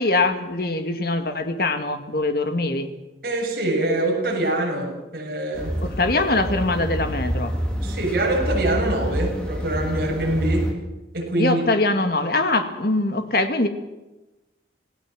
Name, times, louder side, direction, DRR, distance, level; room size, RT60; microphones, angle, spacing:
voice 1, 0.0-2.9 5.8-7.6 11.4-13.7, left 2 dB, 55° left, 7 dB, 2.2 m, -23 dB
voice 2, 3.2-5.7 7.8-10.7 11.1-11.6, right 1 dB, 55° right, -2 dB, 7.4 m, -24 dB
sound 1, 5.5-10.7, equal, 5° left, 3.4 m, -27 dB
27.5 x 17.0 x 7.7 m, 1.1 s
head